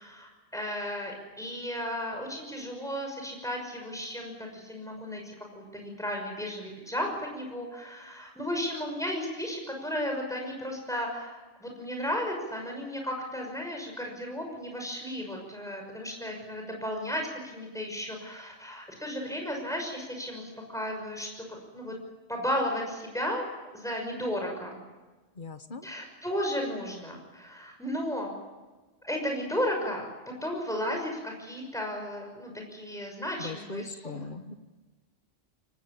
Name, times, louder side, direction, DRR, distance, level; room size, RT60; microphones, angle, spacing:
voice 1, 0.0-21.3 21.7-22.0 22.3-23.4 23.7-24.8 25.8-28.3 29.0-30.0 30.4-34.3, equal, 5° left, 1 dB, 5.9 m, -34 dB
voice 2, 25.3-25.9 33.4-34.5, left 3 dB, 50° left, 10 dB, 1.5 m, -39 dB
23.5 x 19.0 x 8.5 m, 1.2 s
omnidirectional pair, 1.1 m